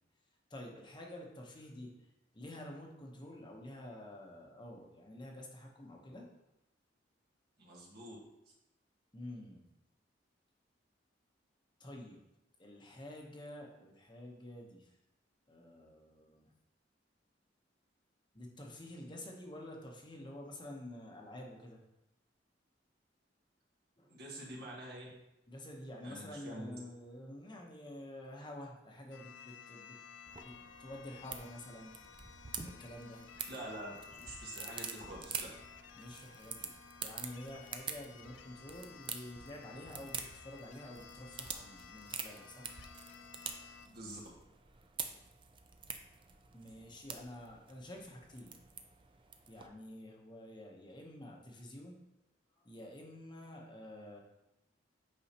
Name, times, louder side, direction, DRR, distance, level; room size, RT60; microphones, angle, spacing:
voice 1, 0.5-2.1 2.3-6.3 9.1-9.6 11.8-12.2 12.6-14.9 15.5-16.5 18.3-21.8 24.0-24.1 25.5-30.0 30.4-31.9 32.6-33.2 35.9-36.7 37.0-42.7 46.5-48.6 49.5-52.0 52.5-54.2, left 1 dB, 25° left, 0 dB, 1.0 m, -49 dB
voice 2, 7.6-8.2 24.1-25.1 26.0-26.7 33.5-35.5 43.9-44.2, right 1 dB, 55° right, -3 dB, 1.7 m, -46 dB
sound 1, 29.1-43.9, left 7 dB, 80° left, 0.5 m, -54 dB
sound 2, 30.3-49.7, right 6 dB, 25° right, 0.5 m, -47 dB
8.3 x 5.5 x 2.9 m, 0.90 s
head